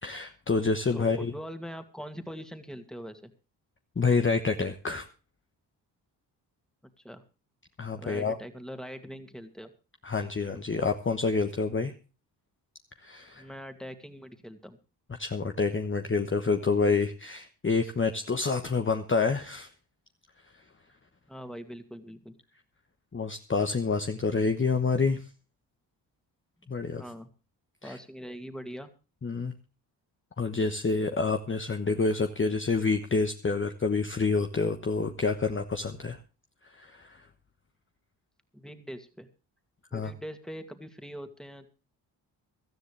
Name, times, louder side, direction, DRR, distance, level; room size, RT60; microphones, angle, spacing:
voice 1, 0.0-1.3 4.0-5.1 7.8-8.4 10.0-11.9 13.0-13.5 15.2-19.7 23.1-25.2 26.7-27.0 27.8-28.0 29.2-29.5 30.4-36.2 36.7-37.2 39.9-40.1, left 4 dB, 25° left, 6 dB, 1.1 m, -28 dB
voice 2, 0.9-3.3 7.0-7.2 8.0-9.7 13.3-14.8 21.3-22.4 27.0-27.3 27.8-28.9 38.5-39.3 39.9-41.7, equal, ahead, 8 dB, 2.3 m, -42 dB
17.5 x 13.0 x 3.3 m, 0.33 s
hypercardioid pair, 45°, 48 cm